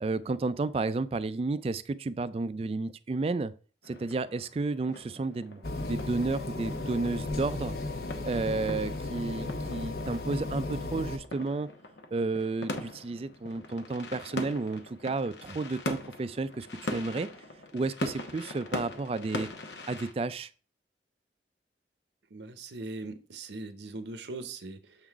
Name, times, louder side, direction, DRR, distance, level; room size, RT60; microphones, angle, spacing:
voice 1, 0.0-3.5 3.8-7.8 8.2-11.7 12.1-17.3 17.7-19.5 19.9-20.5, right 3 dB, 35° right, 0.3 m, -32 dB
sound 1, 3.8-20.1, left 2 dB, 85° left, 1.0 m, -41 dB
sound 2, 5.6-11.2, left 2 dB, 60° left, 0.8 m, -35 dB
voice 2, 22.3-25.0, right 2 dB, 80° right, 0.8 m, -40 dB
7.2 x 3.8 x 4.6 m
head